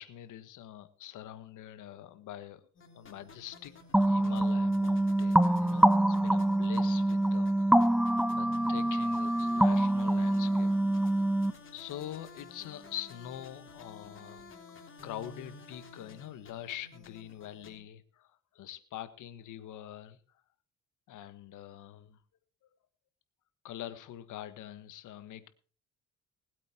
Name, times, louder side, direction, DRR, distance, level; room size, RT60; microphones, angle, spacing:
voice 1, 0.0-2.6 2.9-11.4 11.7-14.4 15.0-20.2 21.1-22.2 23.6-25.5, left 11 dB, 85° left, 12 dB, 1.6 m, -45 dB
sound 1, 2.8-17.8, left 3 dB, 40° left, 3.8 m, -52 dB
sound 2, 3.9-11.5, right 1 dB, 5° right, 0.7 m, -25 dB
20.5 x 8.5 x 4.5 m, 0.39 s
cardioid pair, 90°, 30 cm